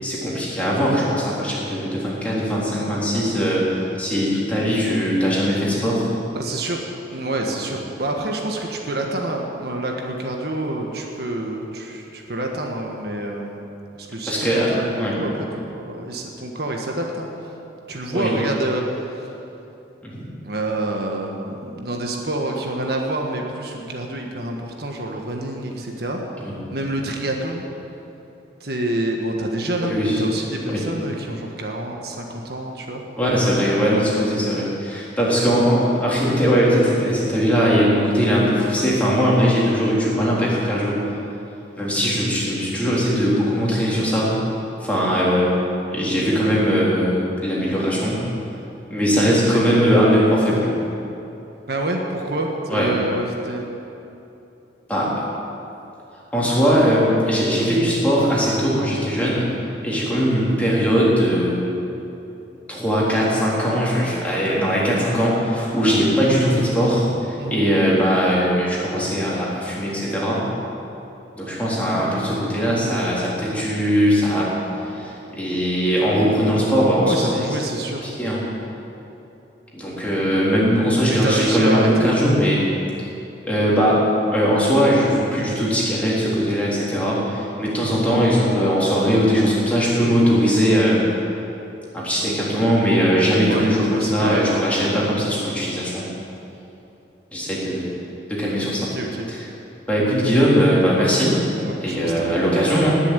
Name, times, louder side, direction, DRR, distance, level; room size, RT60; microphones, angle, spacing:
voice 1, 0.0-6.0 7.5-7.6 14.3-15.2 18.1-18.3 20.0-20.3 26.4-26.5 29.8-30.2 30.7-30.8 33.2-41.0 41.8-44.4 44.8-45.5 45.9-48.3 48.9-50.7 52.7-52.9 54.9-55.1 56.3-59.5 59.8-61.6 62.7-70.4 71.4-74.5 74.8-77.5 78.0-78.4 79.7-82.6 83.4-91.0 91.9-96.2 97.3-97.9 98.3-98.9 99.3-99.4 99.9-101.4 101.8-103.0, equal, 10° left, -6 dB, 3.6 m, -20 dB
voice 2, 6.3-6.8 7.1-13.7 14.0-17.3 17.9-19.3 20.4-26.2 26.7-27.6 28.6-33.0 49.5-49.6 51.7-53.7 67.4-67.6 72.7-73.0 77.0-78.1 81.1-82.1 93.4-94.5 98.8-99.3 101.6-102.4, right 1 dB, 60° right, 1 dB, 1.6 m, -27 dB
20.0 x 7.2 x 9.2 m, 2.9 s
head